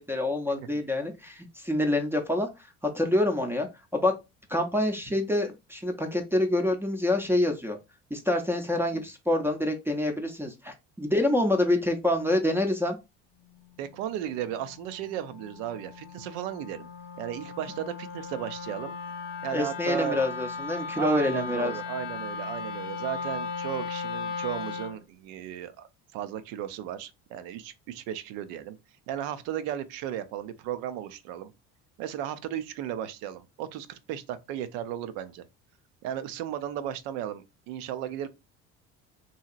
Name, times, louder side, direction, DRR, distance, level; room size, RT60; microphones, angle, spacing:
voice 1, 0.1-2.5 2.9-4.1 4.5-7.8 8.1-13.0 19.5-21.7, left 1 dB, 5° right, 0.5 m, -26 dB
Wind instrument woodwind instrument, 13.4-25.0, left 5 dB, 85° left, 0.7 m, -37 dB
voice 2, 13.8-16.9 17.2-19.0 19.4-20.2 21.0-28.8 29.1-31.5 32.0-35.4 36.0-38.3, right 10 dB, 80° right, 0.5 m, -35 dB
2.8 x 2.7 x 2.4 m
supercardioid pair, 100°, 31 cm